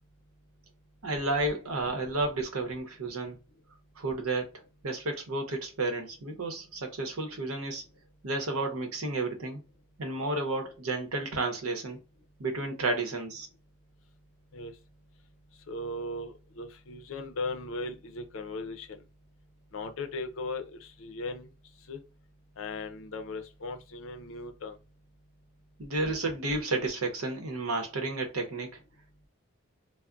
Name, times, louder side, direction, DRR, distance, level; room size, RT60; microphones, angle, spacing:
voice 1, 1.0-3.4 4.0-4.5 4.8-7.8 8.2-9.6 10.0-12.0 12.4-13.5 25.8-28.8, right 2 dB, 85° right, 0.8 m, -31 dB
voice 2, 15.7-19.0 19.7-21.5 21.9-22.0 22.6-24.8, left 2 dB, 70° left, 0.5 m, -37 dB
2.3 x 2.1 x 3.7 m
head